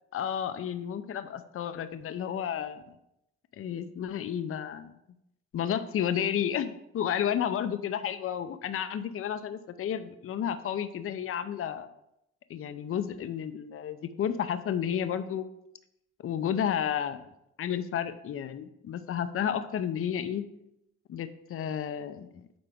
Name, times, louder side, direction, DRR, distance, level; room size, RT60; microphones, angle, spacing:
voice 1, 0.1-2.8 3.6-4.9 5.5-11.9 12.5-15.5 16.2-17.3 17.6-20.4 21.1-22.4, left 9 dB, 45° left, 11 dB, 0.6 m, -32 dB
7.8 x 4.4 x 3.5 m, 0.81 s
cardioid pair, 90°, 30 cm